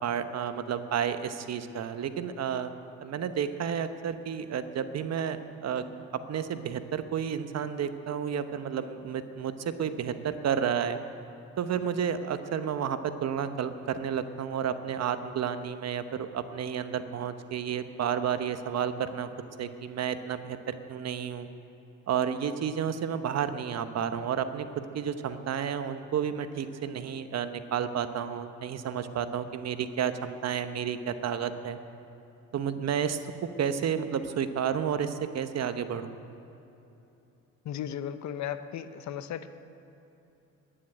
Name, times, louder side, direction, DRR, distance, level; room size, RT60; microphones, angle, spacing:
voice 1, 0.0-2.7 3.0-5.4 5.6-5.8 6.3-11.0 11.6-19.3 19.6-21.5 22.1-24.7 24.9-31.8 32.5-33.2 33.6-36.1, right 8 dB, 60° right, 10 dB, 1.0 m, -31 dB
voice 2, 37.7-39.5, left 9 dB, 70° left, 11 dB, 0.8 m, -35 dB
11.5 x 10.5 x 9.9 m, 2.9 s
cardioid pair, 90°, 30 cm